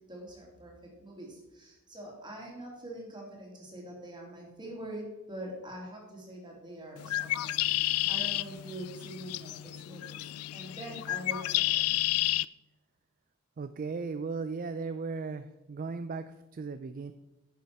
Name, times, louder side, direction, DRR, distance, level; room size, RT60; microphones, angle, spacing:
voice 1, 0.1-10.2 10.5-11.8, right 1 dB, 20° right, -1 dB, 2.6 m, -44 dB
Bird, 7.0-12.5, left 16 dB, 90° left, 0.3 m, -31 dB
voice 2, 13.6-17.1, right 4 dB, 40° right, 11 dB, 0.4 m, -36 dB
10.0 x 6.9 x 4.7 m, 1.0 s
head